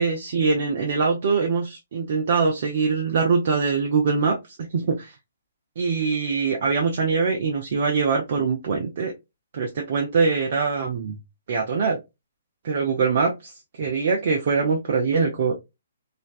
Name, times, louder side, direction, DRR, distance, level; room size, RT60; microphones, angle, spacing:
voice 1, 0.0-5.1 5.8-9.1 9.5-11.2 11.5-12.0 12.6-15.6, right 5 dB, 55° right, 2 dB, 0.5 m, -23 dB
2.5 x 2.2 x 2.3 m, 0.22 s
hypercardioid pair, 135°, 0 cm